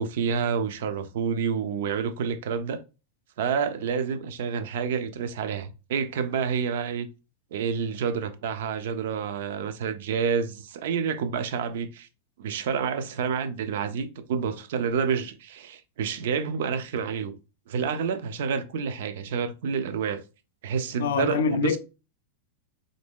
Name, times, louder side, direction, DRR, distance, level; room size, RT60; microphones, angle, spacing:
voice 1, 0.0-2.8 3.4-7.1 7.5-12.1 12.4-17.3 17.7-20.2 20.6-21.8, right 6 dB, 60° right, 0.4 m, -28 dB
voice 2, 21.0-21.8, left 6 dB, 80° left, 0.4 m, -24 dB
3.0 x 2.6 x 3.5 m
supercardioid pair, 170°, 0 cm